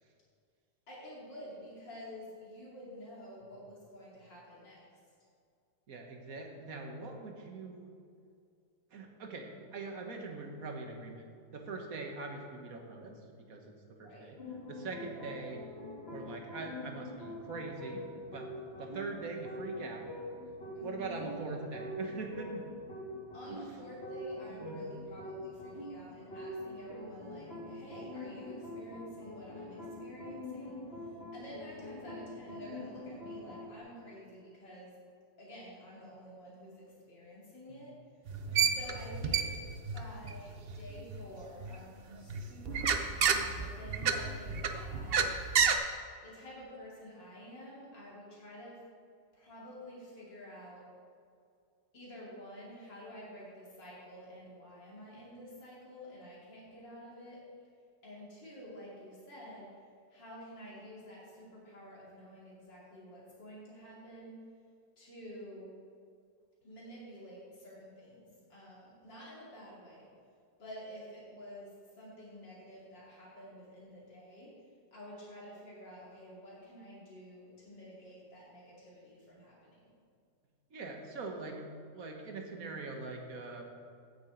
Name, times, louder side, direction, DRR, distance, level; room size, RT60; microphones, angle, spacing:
voice 1, 0.9-4.8 14.0-14.3 20.7-21.2 23.3-35.0 35.4-38.0 38.7-39.6 39.9-45.4 46.2-48.8 49.3-50.9 51.9-57.4 58.0-59.8 60.1-64.4 65.0-65.8 66.6-70.1 70.6-74.5 74.9-79.9, equal, 75° left, -6 dB, 3.2 m, -50 dB
voice 2, 5.9-7.9 8.9-13.1 13.5-14.4 14.7-15.6 16.1-18.0 18.3-18.5 18.8-20.1 20.8-22.6 23.5-23.6 24.5-24.9 27.3-27.6 38.4-38.7 80.7-81.7 81.9-83.6, right 3 dB, 50° right, 2 dB, 1.7 m, -42 dB
sound 1, 14.4-33.8, left 1 dB, 35° left, 2.2 m, -44 dB
sound 2, 38.3-41.7 42.1-45.7, right 6 dB, 75° right, 0.5 m, -30 dB
8.9 x 7.4 x 8.1 m, 2.3 s
omnidirectional pair, 2.0 m